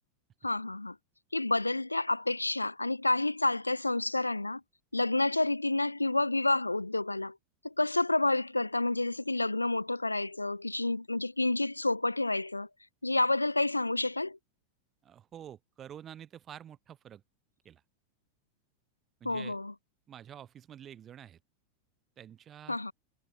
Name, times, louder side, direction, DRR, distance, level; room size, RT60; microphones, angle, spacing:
voice 1, 0.4-1.0 1.3-4.6 4.9-7.4 7.6-12.7 13.0-14.4 19.2-19.7 22.7-22.9, left 2 dB, 85° left, 0.3 m, -29 dB
voice 2, 15.0-17.2 17.6-17.8 19.2-19.6 20.1-21.4 22.2-22.8, right 10 dB, 25° right, 0.7 m, -48 dB
figure-of-eight pair, 90°, 0 cm